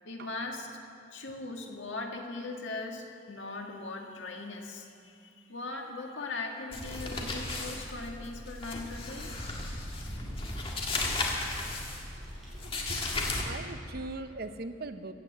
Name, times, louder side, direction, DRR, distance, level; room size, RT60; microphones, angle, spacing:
voice 1, 0.1-0.7 1.1-9.4, left 3 dB, 80° left, 2 dB, 1.8 m, -39 dB
sound 1, 6.7-13.4, left 2 dB, 30° left, 1.8 m, -35 dB
sound 2, 8.6-13.1, equal, ahead, 4.5 m, -44 dB
voice 2, 12.5-15.1, right 2 dB, 55° right, 9 dB, 0.7 m, -41 dB
15.5 x 9.3 x 8.0 m, 2.6 s
head